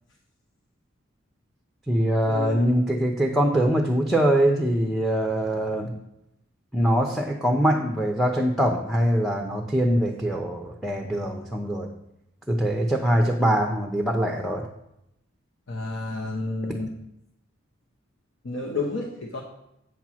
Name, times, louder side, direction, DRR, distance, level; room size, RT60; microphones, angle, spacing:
voice 1, 1.9-6.0 6.7-11.9 12.5-14.7, right 1 dB, ahead, 2 dB, 0.6 m, -23 dB
voice 2, 15.7-16.9 18.4-19.4, left 2 dB, 65° left, 0 dB, 0.9 m, -30 dB
8.3 x 4.4 x 6.1 m, 0.82 s
head